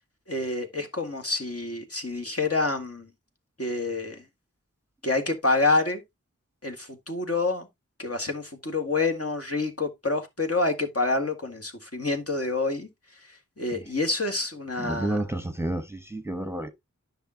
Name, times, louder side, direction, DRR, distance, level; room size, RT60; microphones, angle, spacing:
voice 1, 0.3-3.1 3.6-4.2 5.0-6.0 6.6-7.7 8.0-12.9 13.6-15.2, left 3 dB, 50° left, 1.9 m, -27 dB
voice 2, 14.8-16.7, right 1 dB, 10° right, 1.1 m, -31 dB
10.0 x 5.7 x 2.8 m
wide cardioid pair, 40°, 31 cm